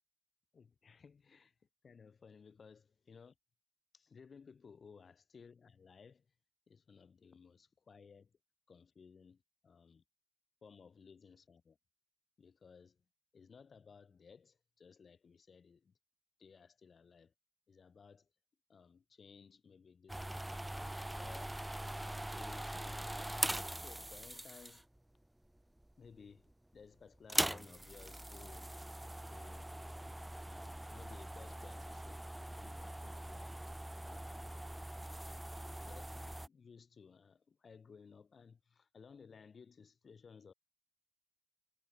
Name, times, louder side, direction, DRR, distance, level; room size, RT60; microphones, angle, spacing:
voice 1, 0.5-1.5 1.8-3.3 3.9-6.3 6.7-8.3 8.7-10.0 10.6-11.8 12.4-13.0 13.3-15.9 16.4-17.3 17.7-18.3 18.7-20.6 21.2-21.6 22.0-23.2 23.8-24.8 26.0-28.7 29.3-30.2 30.5-32.2 32.6-33.6 34.0-34.4 35.3-40.5, left 5 dB, 40° left, 0.8 m, -59 dB
sound 1, 20.1-25.0 25.8-26.2 26.5-26.6 27.1-36.5, right 1 dB, 5° right, 0.4 m, -42 dB
cardioid pair, 90°, 0 cm